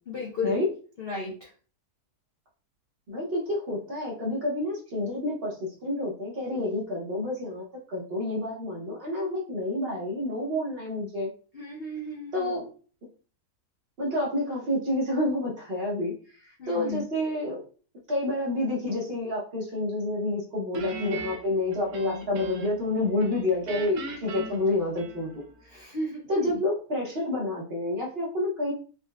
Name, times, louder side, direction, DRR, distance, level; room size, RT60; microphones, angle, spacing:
voice 1, 0.1-0.6 1.0-1.5 11.5-12.6 16.6-17.1 25.7-26.6, left 2 dB, 60° left, -3 dB, 0.6 m, -34 dB
voice 2, 3.1-11.3 12.3-12.7 14.0-16.1 16.4-17.6 18.1-25.3 26.3-28.7, left 1 dB, 45° right, -4 dB, 0.9 m, -29 dB
Guitar, 20.7-22.9 23.2-25.5, right 1 dB, 70° right, 1.1 m, -38 dB
3.9 x 2.2 x 2.2 m, 0.39 s
omnidirectional pair, 1.7 m